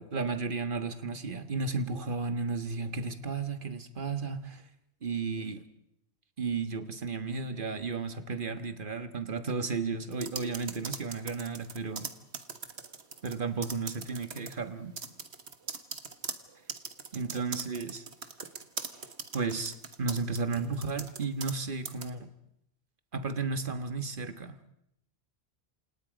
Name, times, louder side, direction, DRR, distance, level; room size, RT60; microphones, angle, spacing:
voice 1, 0.0-4.6 5.0-5.6 6.4-12.1 13.2-14.9 17.1-18.0 19.3-22.3 23.1-24.7, right 4 dB, 45° right, 9 dB, 1.7 m, -33 dB
sound 1, 10.1-13.4 13.6-14.6 15.0-21.6 21.9-22.1, right 5 dB, 65° right, 1.7 m, -40 dB
28.0 x 27.5 x 5.2 m, 0.76 s
omnidirectional pair, 1.2 m